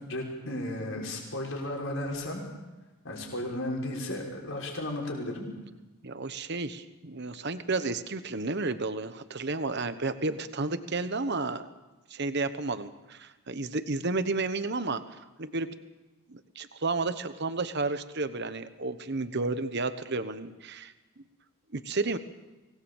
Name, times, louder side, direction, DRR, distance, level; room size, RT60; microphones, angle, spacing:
voice 1, 0.1-2.4 3.0-5.5, left 1 dB, 65° left, -1 dB, 6.2 m, -34 dB
voice 2, 6.0-11.7 12.1-15.7 16.3-20.9 21.7-22.2, right 3 dB, 50° right, 11 dB, 1.1 m, -32 dB
24.5 x 19.5 x 7.2 m, 1.1 s
head